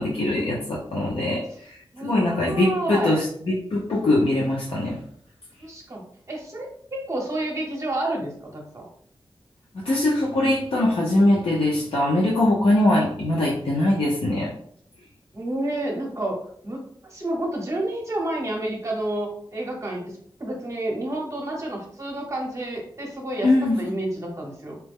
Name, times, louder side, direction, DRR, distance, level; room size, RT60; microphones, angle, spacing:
voice 1, 0.0-5.0 9.7-14.5 23.4-23.8, left 1 dB, 80° left, -4 dB, 0.7 m, -22 dB
voice 2, 1.9-3.2 5.6-6.0 6.3-8.9 15.3-16.8 17.1-20.1 20.4-23.5 23.8-24.8, right 1 dB, 35° right, -1 dB, 0.8 m, -30 dB
4.3 x 2.1 x 3.5 m, 0.62 s
wide cardioid pair, 135°, 9 cm